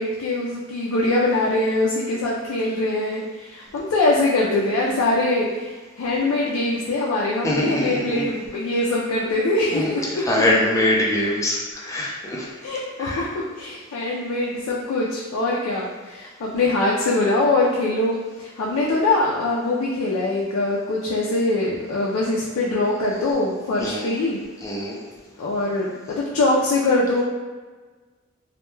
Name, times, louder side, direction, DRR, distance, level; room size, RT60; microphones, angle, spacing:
voice 1, 0.0-10.4 12.6-24.4 25.4-27.2, left 2 dB, 85° left, -4 dB, 0.3 m, -23 dB
voice 2, 7.4-8.2 9.7-9.9 10.3-12.5 13.0-13.2 23.8-24.1 24.6-25.0, left 1 dB, 15° left, -4 dB, 0.4 m, -23 dB
2.1 x 2.1 x 3.0 m, 1.4 s
head